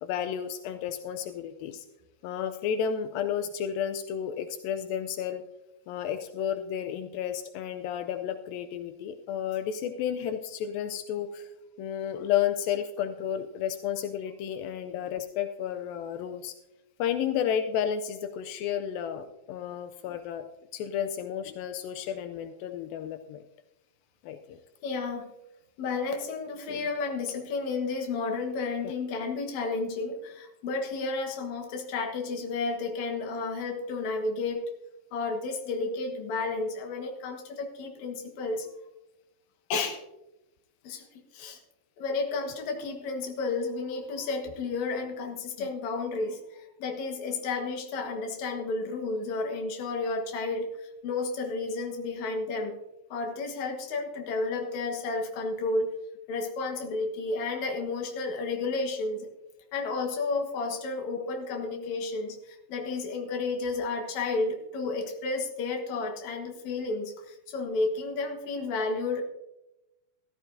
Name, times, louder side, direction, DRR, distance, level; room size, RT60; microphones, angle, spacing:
voice 1, 0.0-1.9 2.2-5.4 5.9-11.5 11.8-16.5 17.0-20.4 20.7-23.4 24.2-24.6 26.7-26.8 28.8-28.9 45.6-45.7, left 9 dB, 85° left, 8 dB, 2.4 m, -32 dB
voice 2, 24.8-25.3 25.8-34.6 35.1-38.7 39.7-40.0 40.8-41.1 41.3-41.6 42.0-46.4 46.8-50.7 51.0-52.8 53.1-55.9 56.3-59.3 59.7-69.2, left 3 dB, 60° left, 3 dB, 2.5 m, -32 dB
14.5 x 14.0 x 2.6 m, 0.94 s
omnidirectional pair, 4.1 m